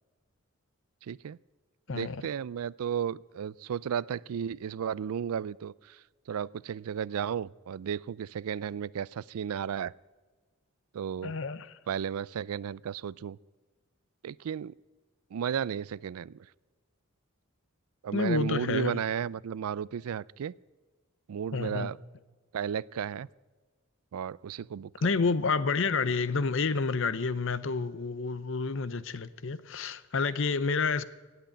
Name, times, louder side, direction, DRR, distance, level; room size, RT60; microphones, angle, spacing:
voice 1, 1.1-1.4 1.9-6.0 6.3-9.9 10.9-11.3 11.9-13.4 14.2-14.7 15.3-16.3 18.0-20.5 21.3-22.0 22.5-23.3 24.1-24.9, right 8 dB, 75° right, 0.4 m, -34 dB
voice 2, 1.9-2.2 11.2-11.8 18.1-19.0 21.5-21.9 25.0-31.0, left 4 dB, 55° left, 0.6 m, -29 dB
17.5 x 8.0 x 8.8 m
head